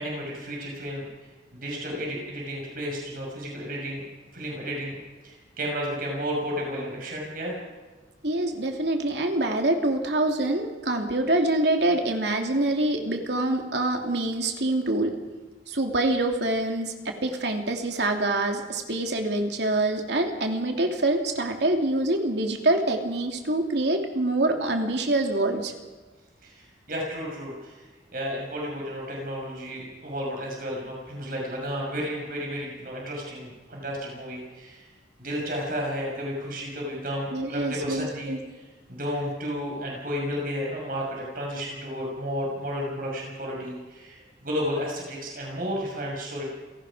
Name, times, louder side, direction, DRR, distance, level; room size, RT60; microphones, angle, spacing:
voice 1, 0.0-4.0 4.3-5.0 5.2-7.6 26.4-27.9 28.1-34.8 35.2-38.6 38.9-46.4, equal, 50° right, -1 dB, 6.1 m, -32 dB
voice 2, 8.2-15.1 15.7-25.7 37.3-38.4, right 2 dB, 65° right, 3 dB, 3.1 m, -25 dB
28.0 x 18.0 x 5.1 m, 1.3 s
head